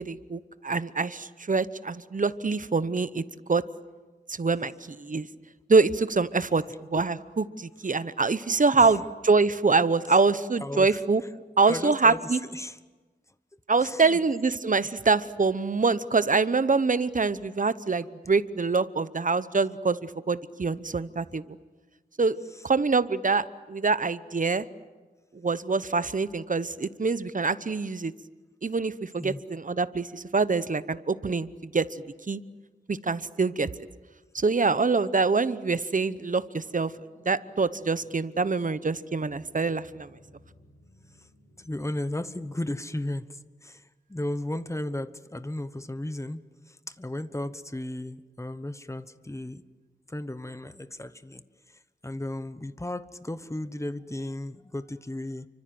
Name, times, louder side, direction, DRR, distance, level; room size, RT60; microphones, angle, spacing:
voice 1, 0.0-3.2 3.5-3.6 4.3-5.3 5.7-6.6 6.9-11.2 11.6-12.4 13.7-21.4 22.2-22.4 22.6-24.6 25.4-28.1 28.6-32.4 32.9-33.7 34.3-36.9 37.2-40.1, right 4 dB, 45° right, 15 dB, 0.9 m, -25 dB
voice 2, 6.5-7.1 8.7-9.0 10.1-10.2 10.6-11.0 11.7-12.8 13.8-14.2 22.5-22.6 29.2-29.4 41.2-41.3 41.6-46.4 46.7-49.6 50.1-55.5, left 1 dB, 15° left, 13 dB, 1.1 m, -35 dB
sound 1, 36.5-42.4, left 1 dB, 85° left, 6.6 m, -58 dB
29.5 x 24.5 x 7.8 m, 1.3 s
wide cardioid pair, 85°, 18 cm